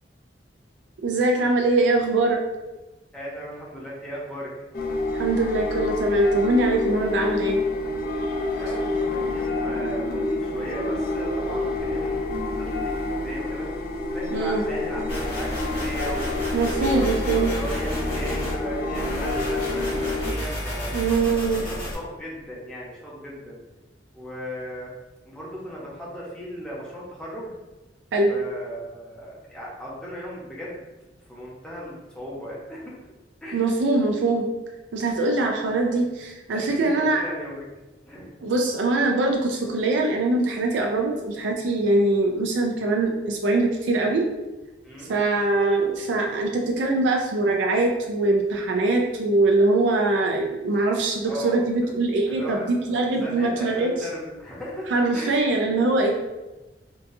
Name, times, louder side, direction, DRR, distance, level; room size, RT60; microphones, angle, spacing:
voice 1, 1.0-2.4 5.1-7.6 14.3-14.6 16.5-17.5 20.9-21.6 28.1-28.3 33.5-34.5 34.9-37.2 38.4-44.2 45.1-53.9 54.9-56.1, right 2 dB, 85° right, 2 dB, 0.4 m, -22 dB
voice 2, 3.1-4.5 8.5-13.7 14.1-16.4 16.9-17.1 17.3-21.0 21.5-23.6 24.1-24.9 25.3-27.5 28.3-30.8 31.3-32.9 33.4-33.6 36.0-36.1 36.5-37.6 38.1-38.2 44.8-45.1 51.2-51.6 51.8-51.9 52.3-54.9 55.1-55.4 56.0-56.1, equal, 5° left, -6 dB, 0.8 m, -37 dB
sound 1, 4.7-20.3, left 2 dB, 55° left, 0.6 m, -28 dB
sound 2, 15.1-18.6 18.9-21.9, equal, 30° left, 1.4 m, -30 dB
3.9 x 2.3 x 2.6 m, 1.1 s
head